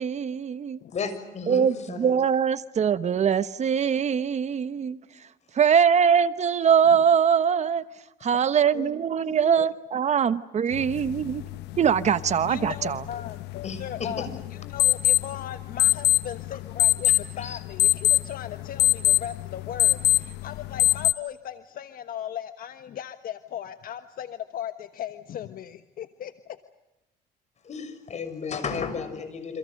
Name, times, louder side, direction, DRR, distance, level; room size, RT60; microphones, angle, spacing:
voice 1, 0.0-0.8 1.5-5.0 5.5-7.8 8.2-11.4 11.8-13.0, right 7 dB, 40° right, 1.1 m, -22 dB
voice 2, 0.9-2.1 8.7-8.9 9.2-9.5 13.6-14.3 17.4-17.6 27.6-29.6, left 5 dB, 40° left, 6.4 m, -34 dB
sound 1, 10.7-21.1, left 15 dB, 90° left, 1.0 m, -25 dB
voice 3, 12.5-26.6, left 10 dB, 60° left, 1.3 m, -38 dB
28.5 x 27.0 x 6.6 m
cardioid pair, 110°, 17 cm